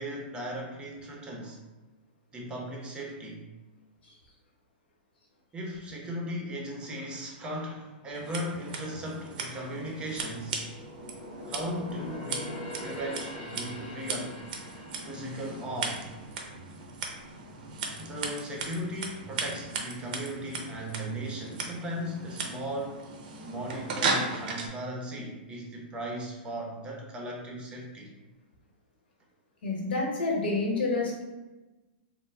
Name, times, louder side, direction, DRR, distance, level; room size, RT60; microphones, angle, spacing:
voice 1, 0.0-1.6 2.3-3.5 5.5-10.6 11.5-14.4 15.0-16.0 18.0-23.0 23.4-28.1, equal, 15° right, -1 dB, 0.6 m, -37 dB
Scissors, 8.1-24.7, right 4 dB, 60° right, 0.6 m, -37 dB
sound 1, 9.9-17.3 17.7-17.9 18.5-19.2 19.5-19.6, left 1 dB, 45° left, 0.8 m, -44 dB
voice 2, 29.6-31.2, left 3 dB, 85° left, -1 dB, 1.0 m, -28 dB
3.1 x 2.0 x 3.3 m, 1.1 s
hypercardioid pair, 145°, 5 cm